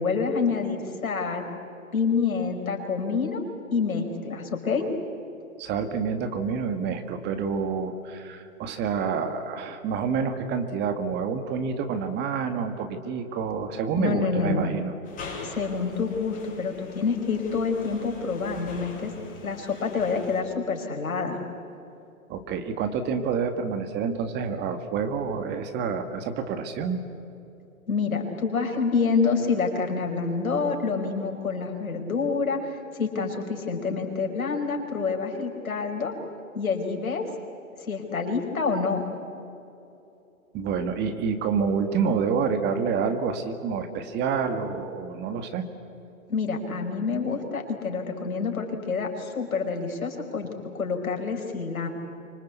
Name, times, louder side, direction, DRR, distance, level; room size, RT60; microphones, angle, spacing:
voice 1, 0.0-1.4 1.9-3.4 3.7-4.9 14.0-14.7 15.4-19.1 19.4-21.4 27.9-36.1 36.5-37.3 37.8-39.0 46.3-50.5 50.7-51.9, left 5 dB, 80° left, 3 dB, 5.2 m, -27 dB
voice 2, 5.6-14.9 22.3-27.0 40.5-45.7, right 6 dB, 25° right, 8 dB, 2.0 m, -28 dB
sound 1, 15.0-20.4, left 4 dB, 20° left, 6.5 m, -42 dB
25.5 x 24.5 x 8.3 m, 2.8 s
hypercardioid pair, 130°, 41 cm